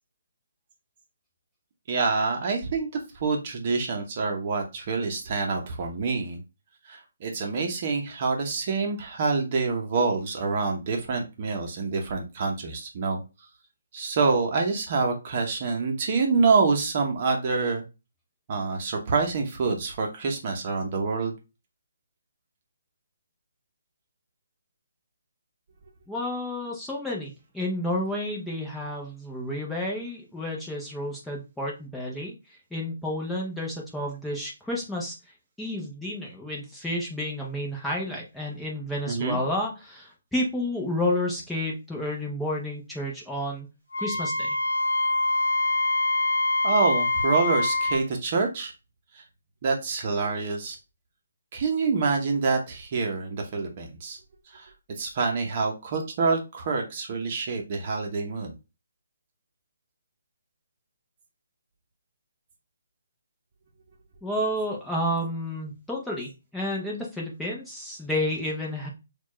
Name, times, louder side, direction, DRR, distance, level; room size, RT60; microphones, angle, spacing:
voice 1, 1.9-2.9 3.1-6.4 6.9-13.2 13.9-17.8 18.5-21.3 39.1-39.4 46.6-48.7 49.1-49.2 49.6-50.8 51.5-54.2 54.5-54.7 55.0-58.5, right 4 dB, 40° right, 2 dB, 0.9 m, -26 dB
voice 2, 26.1-32.3 32.7-35.2 35.6-43.7 44.0-44.6 64.2-68.9, left 1 dB, 5° left, -4 dB, 0.8 m, -31 dB
Wind instrument woodwind instrument, 43.9-48.0, left 2 dB, 80° left, 0.7 m, -25 dB
4.2 x 2.4 x 3.0 m, 0.27 s
hypercardioid pair, 150°, 0 cm